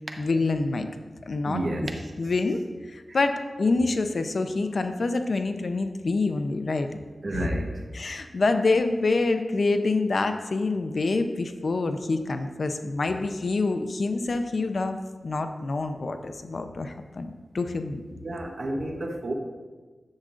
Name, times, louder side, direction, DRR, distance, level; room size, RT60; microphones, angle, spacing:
voice 1, 0.2-0.9 1.3-1.6 2.2-2.6 2.9-6.9 7.3-7.5 7.9-15.0 15.2-18.0, left 3 dB, 65° left, 7 dB, 0.5 m, -26 dB
voice 2, 1.4-2.0 3.1-3.2 7.2-7.8 18.2-19.3, right 1 dB, 55° right, 3 dB, 1.0 m, -30 dB
10.5 x 7.5 x 2.5 m, 1.3 s
wide cardioid pair, 80°, 0 cm